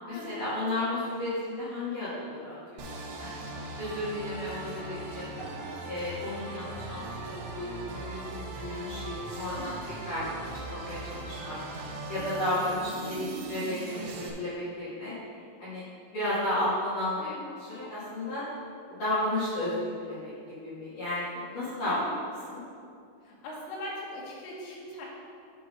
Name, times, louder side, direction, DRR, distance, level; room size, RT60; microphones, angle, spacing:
voice 1, 0.0-3.3 3.7-5.2 5.8-9.7 10.0-11.6 12.1-15.1 15.6-15.8 16.1-18.4 18.9-22.0 22.5-22.6, left 1 dB, 50° left, -11 dB, 3.0 m, -33 dB
sound 1, 2.8-14.3, right 2 dB, 75° right, 2.9 m, -39 dB
voice 2, 5.3-5.7 9.6-9.7 13.0-13.3 17.2-17.5 21.9-22.2 23.3-25.1, left 1 dB, 80° left, -4 dB, 4.0 m, -41 dB
10.0 x 3.8 x 5.4 m, 2.4 s
omnidirectional pair, 5.7 m